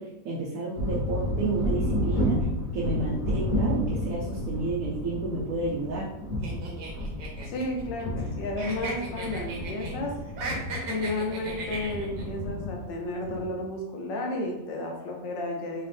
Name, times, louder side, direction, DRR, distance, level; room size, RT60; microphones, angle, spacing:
voice 1, 0.0-2.5 2.7-6.1, right 3 dB, 65° right, -3 dB, 0.9 m, -31 dB
sound 1, 0.7-13.5, left 1 dB, 30° left, 1.1 m, -31 dB
sound 2, 6.4-8.3 8.6-10.0 10.3-12.2, right 2 dB, 85° right, 1.6 m, -36 dB
voice 2, 7.5-10.2 10.9-15.9, left 1 dB, 85° left, 1 dB, 1.5 m, -32 dB
4.2 x 2.8 x 3.3 m, 1.0 s
omnidirectional pair, 1.9 m